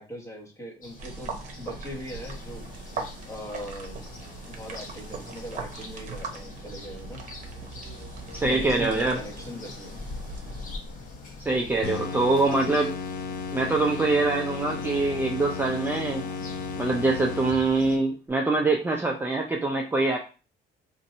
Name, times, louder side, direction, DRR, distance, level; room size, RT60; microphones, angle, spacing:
voice 1, 0.0-2.7 3.2-4.0 4.5-7.2 8.5-10.0, equal, 20° left, 0 dB, 1.1 m, -40 dB
sound 1, 0.8-18.0, left 3 dB, 55° left, 1.0 m, -43 dB
sound 2, 1.0-10.8, right 4 dB, 45° right, 0.9 m, -40 dB
voice 2, 8.3-9.2 11.4-13.0 13.5-16.2 16.8-20.2, right 3 dB, 10° right, 0 dB, 0.5 m, -24 dB
sound 3, 11.8-17.9, left 5 dB, 85° left, 0.6 m, -34 dB
2.6 x 2.6 x 4.2 m, 0.34 s
cardioid pair, 110°, 17 cm